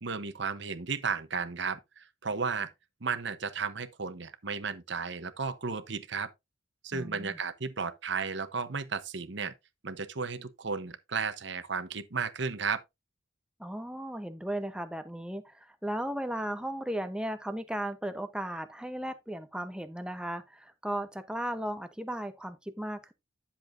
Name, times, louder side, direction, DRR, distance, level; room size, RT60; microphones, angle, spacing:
voice 1, 0.0-2.7 3.0-6.3 6.8-9.5 9.8-12.8, right 5 dB, 60° right, 1.0 m, -34 dB
voice 2, 6.9-7.4 13.6-23.1, right 1 dB, 5° right, 0.9 m, -36 dB
10.5 x 7.0 x 2.7 m
head